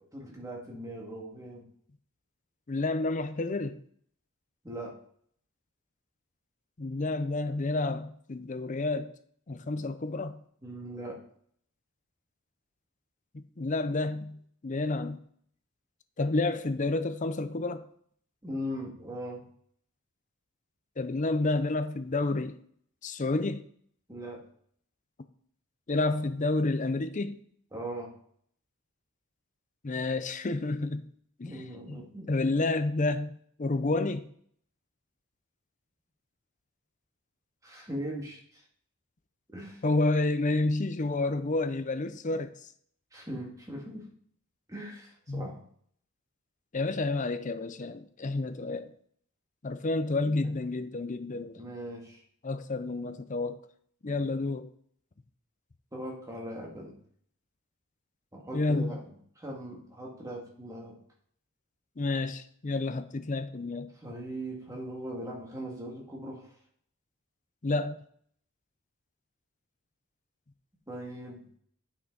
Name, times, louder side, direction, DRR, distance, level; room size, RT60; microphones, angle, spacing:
voice 1, 0.1-1.6 4.6-4.9 10.6-11.2 18.4-19.4 24.1-24.4 27.7-28.1 31.4-32.3 37.6-38.6 39.5-39.8 43.1-44.0 44.7-45.6 50.2-50.5 51.5-52.2 55.9-56.9 58.3-61.0 63.9-66.5 70.9-71.4, right 1 dB, 15° right, 2.0 m, -40 dB
voice 2, 2.7-3.8 6.8-9.1 9.5-10.4 13.6-15.2 16.2-17.8 21.0-22.5 23.0-23.6 25.9-27.4 29.8-31.0 31.4-31.5 31.9-32.0 32.3-34.2 39.8-42.5 45.3-45.5 46.7-48.9 49.6-51.6 52.4-53.6 54.0-54.7 58.5-58.9 62.0-63.9 67.6-68.0, left 2 dB, 35° left, 0.6 m, -30 dB
8.6 x 6.0 x 4.0 m
head